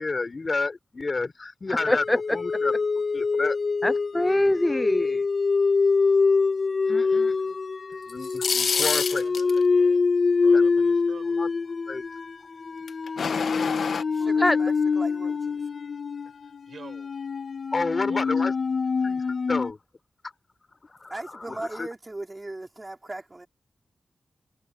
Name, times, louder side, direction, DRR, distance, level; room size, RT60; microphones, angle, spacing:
voice 1, 0.0-3.6 8.1-9.2 10.5-10.7 11.4-11.5 11.9-12.0 17.7-18.5 19.0-19.8 20.8-21.1 21.5-21.9, left 3 dB, 45° left, 4.2 m, -30 dB
sound 1, 1.8-19.7, left 4 dB, 60° left, 1.8 m, -25 dB
voice 2, 3.8-5.2 6.9-7.0 14.4-14.6, left 1 dB, 15° left, 0.4 m, -23 dB
voice 3, 6.9-7.2 7.9-8.1 8.6-10.0 10.4-11.4 16.3-17.1 17.9-18.5, right 5 dB, 75° right, 6.4 m, -47 dB
sound 2, 8.1-9.6 12.9-14.0, left 6 dB, 80° left, 1.2 m, -26 dB
voice 4, 13.9-15.7 21.1-23.5, right 2 dB, 25° right, 4.8 m, -38 dB
cardioid pair, 65°, 0 cm